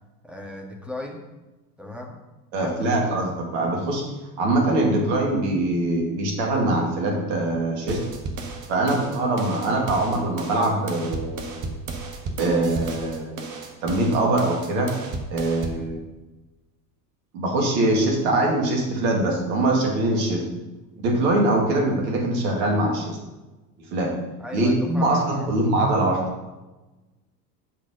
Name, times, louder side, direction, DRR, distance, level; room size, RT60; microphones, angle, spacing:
voice 1, 0.2-1.2 1.8-2.2 2.6-3.1 15.7-15.9 24.4-25.6, left 1 dB, ahead, -1 dB, 2.0 m, -37 dB
voice 2, 2.5-4.0 4.4-8.0 8.7-11.7 12.4-13.5 13.8-14.9 15.3-16.1 17.3-20.4 21.0-23.2 23.9-24.1 24.5-26.2, right 2 dB, 60° right, 0 dB, 2.6 m, -23 dB
sound 1, 7.9-15.9, right 3 dB, 40° right, 1.5 m, -34 dB
8.3 x 6.2 x 5.5 m, 1.1 s
figure-of-eight pair, 70°, 49 cm